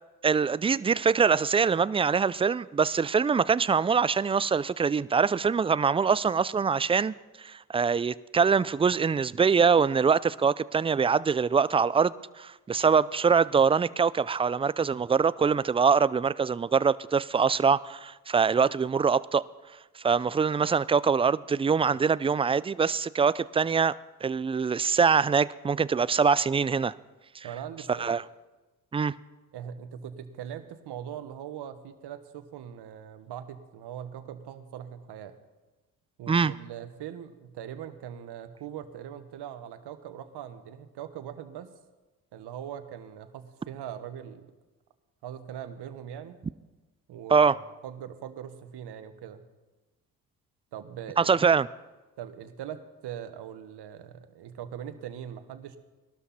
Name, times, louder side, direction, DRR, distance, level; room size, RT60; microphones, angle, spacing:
voice 1, 0.2-7.1 7.4-19.4 20.0-23.9 24.2-26.9 27.4-27.5 28.0-28.2 28.9-29.1 36.3-36.5 47.3-47.6 51.2-51.7, right 6 dB, 15° right, 0.3 m, -24 dB
voice 2, 27.4-28.2 29.5-35.3 36.2-41.7 42.3-44.5 45.2-46.4 47.1-47.6 47.8-49.4 50.7-51.4 52.2-55.8, right 9 dB, 65° right, 1.5 m, -41 dB
19.5 x 12.5 x 4.3 m
hypercardioid pair, 55°, 44 cm